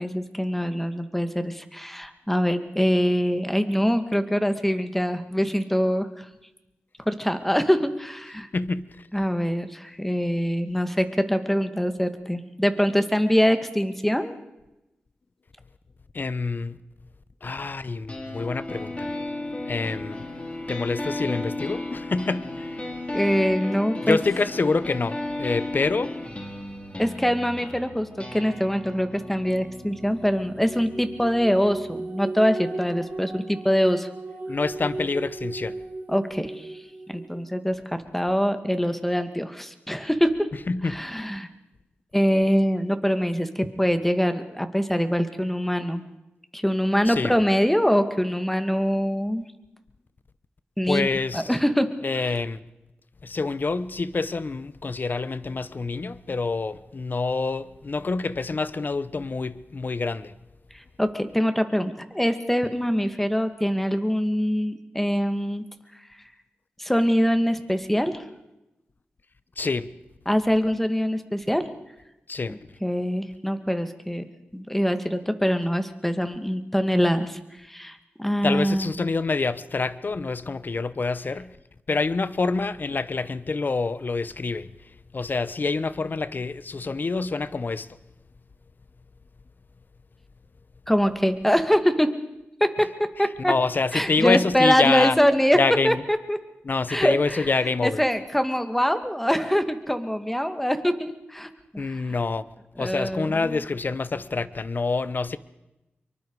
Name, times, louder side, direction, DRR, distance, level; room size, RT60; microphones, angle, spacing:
voice 1, 0.0-6.3 7.1-8.5 9.1-14.4 23.1-24.2 27.0-34.1 36.1-36.8 37.1-40.5 40.8-41.5 42.1-46.0 46.5-49.5 50.8-51.1 51.3-51.9 60.7-65.6 66.8-68.2 70.3-71.6 72.8-77.4 77.7-78.9 90.9-92.1 92.6-93.5 93.9-95.6 95.8-96.4 96.9-102.0 102.8-103.6, equal, 5° left, 2.1 m, -24 dB
voice 2, 8.5-8.9 16.1-16.8 17.4-19.2 19.7-20.3 20.7-22.8 24.0-26.1 34.5-35.8 40.7-41.0 47.1-47.3 50.9-51.5 52.0-52.6 53.2-60.3 69.6-69.9 72.3-72.6 78.4-81.5 81.9-84.7 85.1-87.9 93.4-95.2 95.5-96.0 96.6-98.0 101.8-102.4 102.8-105.4, left 3 dB, 55° left, 1.0 m, -26 dB
sound 1, 18.1-32.1, left 2 dB, 30° left, 4.5 m, -35 dB
sound 2, 29.7-37.6, right 2 dB, 45° right, 7.9 m, -36 dB
25.0 x 23.5 x 4.9 m
cardioid pair, 55°, 4 cm